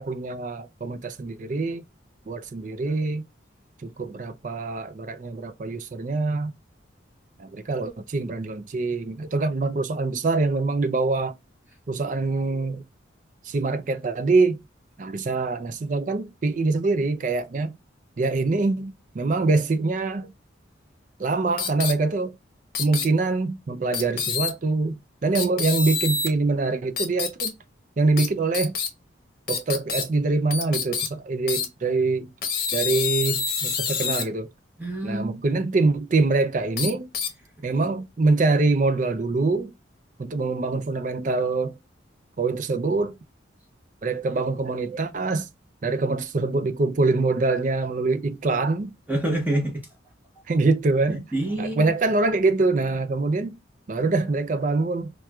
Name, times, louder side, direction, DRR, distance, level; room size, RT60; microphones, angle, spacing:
voice 1, 0.0-1.8 2.3-3.2 3.8-6.5 7.4-11.3 11.9-12.8 13.4-14.6 15.0-17.7 18.2-20.3 21.2-22.4 22.8-27.5 28.0-28.7 29.5-32.3 32.7-34.5 35.0-37.1 37.6-39.7 40.2-41.7 42.4-43.1 44.0-45.5 45.8-48.9 50.5-51.2 51.6-53.6 53.9-55.1, right 3 dB, 40° right, 0.4 m, -24 dB
sound 1, 21.6-21.9 22.8-23.1 23.9-24.5 25.4-26.3 27.0-27.5 28.2-28.3 28.5-28.9 29.5-30.0 30.5-31.1 31.5-31.7 32.4-34.2 36.8-37.3, left 6 dB, 50° left, 0.8 m, -26 dB
voice 2, 34.8-35.4 49.1-49.8 51.1-51.9, right 1 dB, 10° right, 0.8 m, -27 dB
4.4 x 2.3 x 2.3 m
head